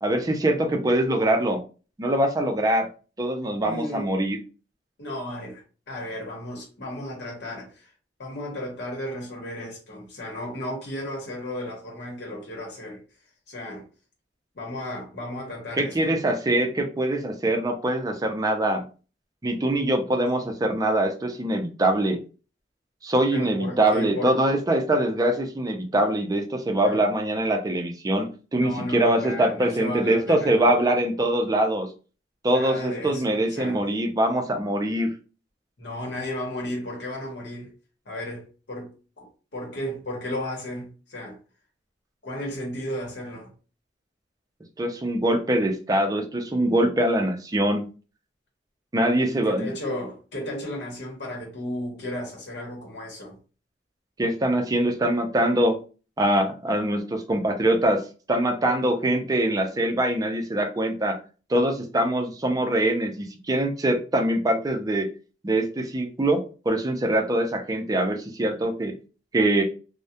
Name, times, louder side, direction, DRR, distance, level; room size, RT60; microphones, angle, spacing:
voice 1, 0.0-1.6 2.0-2.9 3.2-4.4 15.8-18.8 19.4-22.2 23.0-31.9 32.4-35.1 44.8-47.9 48.9-49.7 54.2-55.8 56.2-58.0 58.3-61.2 61.5-65.1 65.4-68.9 69.3-69.6, right 1 dB, 20° right, 0.4 m, -23 dB
voice 2, 3.6-4.1 5.0-7.9 8.2-13.0 13.5-13.8 14.5-16.2 23.3-24.6 26.8-27.1 28.5-30.7 32.5-33.8 35.8-37.7 38.1-38.9 39.2-41.4 42.2-43.5 49.2-53.4, left 1 dB, 70° left, 0.9 m, -34 dB
2.3 x 2.1 x 2.7 m
head